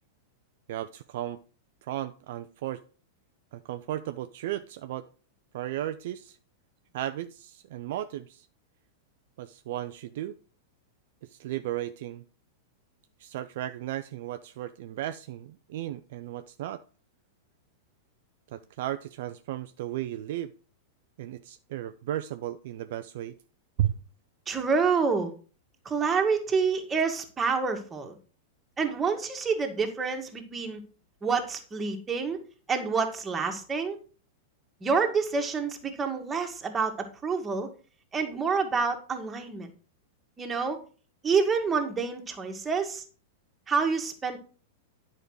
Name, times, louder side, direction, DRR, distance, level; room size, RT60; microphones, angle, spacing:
voice 1, 0.7-1.4 1.8-2.8 3.5-5.1 5.5-6.4 6.9-8.5 9.4-10.4 11.3-12.2 13.2-16.8 18.5-20.5 21.2-23.3 23.8-23.9, right 13 dB, 60° right, 10 dB, 0.4 m, -34 dB
voice 2, 24.5-25.3 25.9-28.1 28.8-30.8 31.2-32.4 32.7-34.0 34.8-37.7 38.1-39.7 40.4-40.8 41.2-43.0 43.7-44.4, right 5 dB, 20° right, 4 dB, 1.7 m, -28 dB
10.0 x 5.2 x 4.7 m, 0.38 s
figure-of-eight pair, 100°, 0 cm